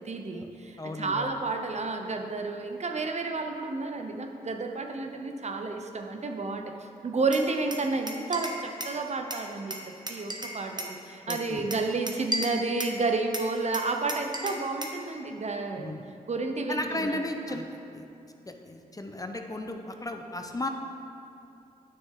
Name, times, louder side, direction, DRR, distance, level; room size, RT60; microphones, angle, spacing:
voice 1, 0.0-6.6 7.0-15.9 16.3-17.2 17.5-17.6, right 3 dB, 45° right, 3 dB, 0.8 m, -31 dB
voice 2, 0.8-1.3 11.3-11.7 15.8-16.0 16.7-17.6 17.9-18.0 18.5-20.7, left 1 dB, 20° left, 5 dB, 0.8 m, -35 dB
Glass, 7.3-9.0 9.3-11.0 11.3-13.0 13.3-15.0, right 1 dB, 25° right, 1.1 m, -35 dB
9.3 x 6.2 x 3.7 m, 2.7 s
supercardioid pair, 40°, 16 cm